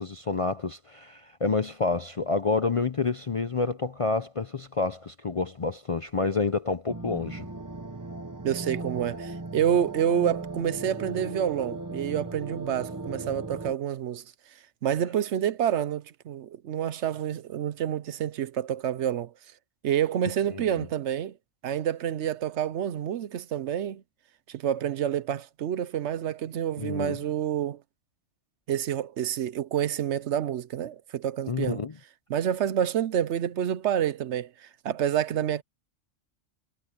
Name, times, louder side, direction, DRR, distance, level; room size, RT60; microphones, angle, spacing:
voice 1, 0.0-7.4 20.5-20.9 26.8-27.2 31.5-31.9, left 4 dB, 40° left, 0.5 m, -28 dB
sound 1, 6.9-13.7, right 3 dB, 15° right, 1.0 m, -37 dB
voice 2, 8.4-14.2 14.8-19.3 19.8-21.4 21.6-24.0 24.5-27.8 28.7-31.8 32.3-35.6, right 10 dB, 70° right, 0.9 m, -28 dB
omnidirectional pair, 1.3 m